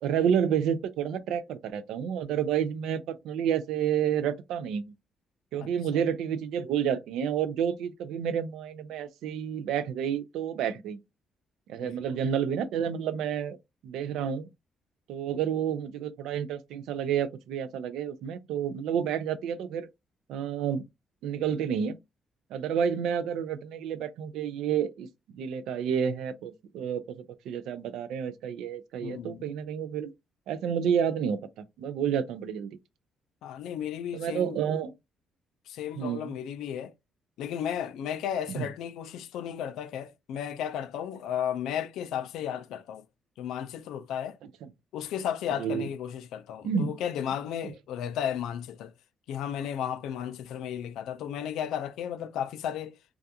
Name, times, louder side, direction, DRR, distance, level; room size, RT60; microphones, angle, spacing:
voice 1, 0.0-4.9 5.5-11.0 11.7-13.6 13.8-14.5 15.1-19.9 20.3-20.8 21.2-22.0 22.5-27.2 27.5-30.1 30.5-31.4 31.8-32.7 34.1-34.9 35.9-36.3 38.5-38.7 44.6-44.7 45.6-45.9 46.6-47.0 47.6-47.7, right 8 dB, 85° right, 0.3 m, -30 dB
voice 2, 5.6-6.0 11.8-12.0 29.0-29.5 33.4-34.6 35.7-36.9 37.4-43.0 43.4-44.4 44.9-48.9 49.3-53.0, left 9 dB, 85° left, 0.3 m, -34 dB
2.3 x 2.3 x 2.7 m
cardioid pair, 90°, 0 cm